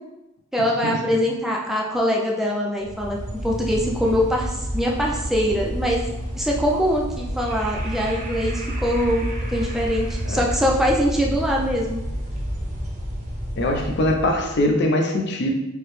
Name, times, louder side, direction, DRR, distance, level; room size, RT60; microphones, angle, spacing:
voice 1, 0.5-6.0 6.3-12.0, equal, ahead, -3 dB, 0.4 m, -23 dB
sound 1, 2.8-14.7, equal, 35° right, 0.7 m, -30 dB
voice 2, 13.6-15.5, left 1 dB, 55° left, 2 dB, 0.6 m, -22 dB
4.7 x 2.1 x 3.1 m, 0.94 s
head